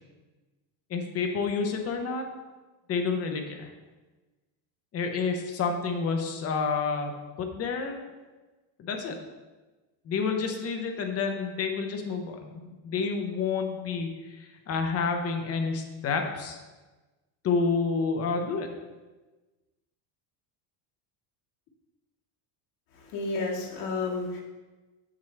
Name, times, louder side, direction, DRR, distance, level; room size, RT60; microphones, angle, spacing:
voice 1, 0.9-2.3 2.9-3.7 4.9-7.1 7.4-8.1 8.8-9.2 10.1-16.6 17.4-18.7, left 5 dB, 30° left, 4 dB, 0.7 m, -29 dB
voice 2, 23.0-24.4, left 3 dB, 80° left, -3 dB, 1.9 m, -31 dB
7.4 x 6.1 x 3.3 m, 1.2 s
cardioid pair, 175°, 49 cm